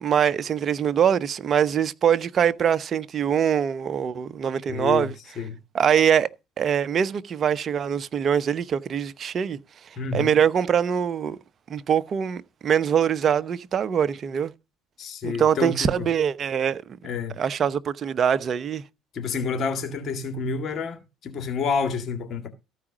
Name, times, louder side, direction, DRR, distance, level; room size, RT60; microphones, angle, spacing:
voice 1, 0.0-5.2 5.7-6.3 6.6-9.6 10.1-11.4 11.7-14.5 15.2-16.8 17.4-18.8, right 8 dB, 45° right, 0.8 m, -23 dB
voice 2, 4.7-5.1 5.4-5.6 10.0-10.3 15.0-15.9 17.0-17.3 19.1-22.5, left 5 dB, 50° left, 2.1 m, -29 dB
14.0 x 4.9 x 6.2 m
supercardioid pair, 80°, 0 cm